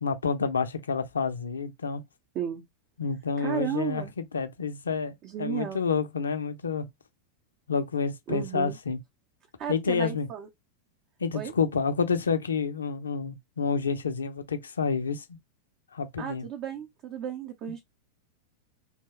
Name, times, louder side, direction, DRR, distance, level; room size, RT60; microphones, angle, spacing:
voice 1, 0.0-2.0 3.0-6.9 7.7-9.0 9.7-10.3 11.2-15.2 15.9-16.4, left 5 dB, 70° left, 0.5 m, -29 dB
voice 2, 3.4-4.1 5.2-5.8 8.3-8.8 9.6-10.5 11.3-11.5 16.2-17.8, right 9 dB, 40° right, 0.7 m, -33 dB
2.9 x 2.1 x 2.9 m
figure-of-eight pair, 90°, 0 cm